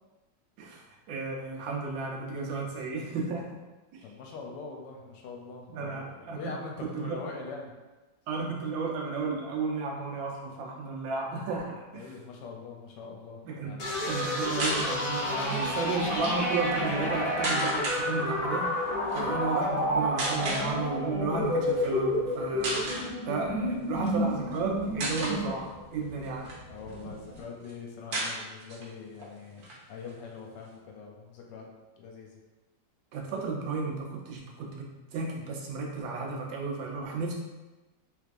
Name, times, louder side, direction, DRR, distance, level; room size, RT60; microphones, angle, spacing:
voice 1, 0.6-3.4 3.9-4.0 5.7-6.4 6.9-7.2 8.3-12.1 13.4-13.7 14.0-18.6 19.1-22.8 23.2-26.5 33.1-37.3, right 4 dB, 85° right, -1 dB, 1.4 m, -33 dB
voice 2, 4.0-7.7 11.9-14.0 26.7-31.6 32.0-32.3, left 4 dB, 75° left, 0 dB, 1.2 m, -43 dB
sound 1, 13.8-27.4, equal, 45° left, 1.0 m, -30 dB
sound 2, 14.5-14.9 16.0-16.3 17.4-18.0 19.0-19.2 20.2-20.7 21.7-21.9 22.3-22.4 22.6-23.1 23.9-24.6 25.0-25.4 26.0-27.0 27.4-27.5 27.6-27.7 28.1-28.9 29.2-29.3 29.6-30.7, right 2 dB, 60° right, 1.2 m, -33 dB
3.3 x 3.2 x 2.4 m, 1.2 s
omnidirectional pair, 2.0 m